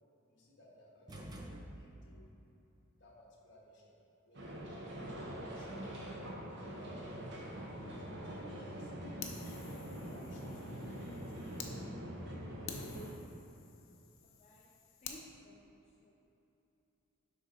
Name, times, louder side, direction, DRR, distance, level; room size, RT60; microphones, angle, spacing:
voice 1, 0.3-1.4 1.7-2.3 2.9-5.0 5.5-5.9 6.5-8.0 8.4-8.9 10.0-10.7 11.3-11.7, equal, 55° left, -4 dB, 1.4 m, -59 dB
sound 1, 1.1-2.3, right 1 dB, 20° right, 0.5 m, -48 dB
sound 2, 4.3-13.1, equal, 55° right, 1.0 m, -44 dB
Fire, 9.2-11.7 12.2-12.3 12.7-15.2, left 6 dB, 75° left, 0.7 m, -50 dB
voice 2, 14.2-14.7 15.0-15.7 16.0-16.1, left 1 dB, 30° left, -4 dB, 0.5 m, -58 dB
7.6 x 3.5 x 5.5 m, 2.9 s
head